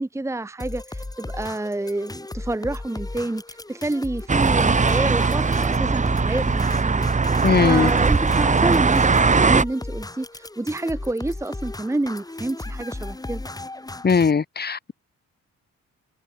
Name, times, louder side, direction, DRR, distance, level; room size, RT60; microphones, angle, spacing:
voice 1, 0.0-13.4, right 2 dB, 10° right, 1.1 m, -29 dB
sound 1, 0.6-14.3, left 2 dB, 15° left, 2.6 m, -35 dB
sound 2, 4.3-9.6, right 4 dB, 25° right, 1.5 m, -19 dB
voice 2, 7.4-7.9 14.0-14.9, left 5 dB, 35° left, 1.8 m, -19 dB
cardioid pair, 100°, 29 cm